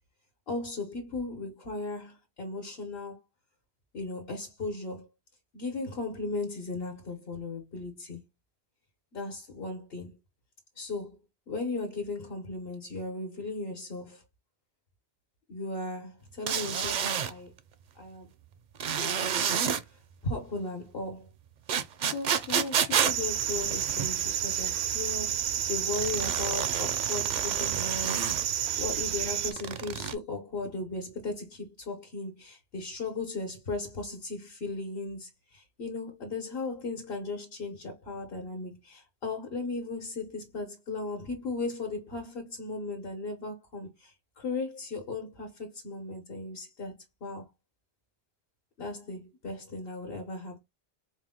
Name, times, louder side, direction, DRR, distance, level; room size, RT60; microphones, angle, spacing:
voice 1, 0.5-3.2 3.9-5.1 5.5-8.2 9.1-10.1 10.7-11.2 11.5-14.2 15.5-17.5 17.9-18.3 18.9-19.6 20.2-21.3 22.0-47.4 48.8-50.6, left 3 dB, 65° left, 1.2 m, -37 dB
sound 1, 16.5-17.3 18.8-19.8 21.7-24.3 25.9-28.4 29.5-30.2, right 7 dB, 55° right, 0.5 m, -30 dB
sound 2, 23.0-29.5, right 10 dB, 80° right, 0.8 m, -30 dB
4.6 x 2.1 x 3.5 m
omnidirectional pair, 1.1 m